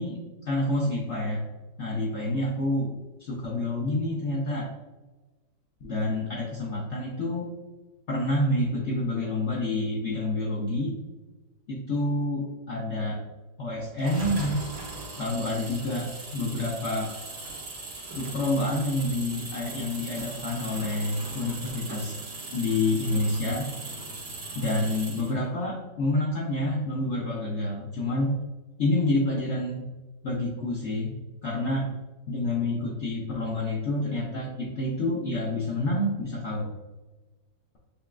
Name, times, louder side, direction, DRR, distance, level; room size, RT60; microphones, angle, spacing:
voice 1, 0.0-1.4 1.8-2.9 3.2-4.7 5.8-7.5 8.1-11.0 11.7-13.2 13.6-14.6 15.2-17.2 18.1-22.2 22.5-23.7 24.6-28.4 28.8-29.9 30.2-31.2 31.4-31.9 32.3-36.7, left 1 dB, 70° left, -3 dB, 0.6 m, -28 dB
sound 1, 14.0-25.4, right 2 dB, 60° right, 1.5 m, -39 dB
6.7 x 2.3 x 2.3 m, 1.2 s
omnidirectional pair, 1.9 m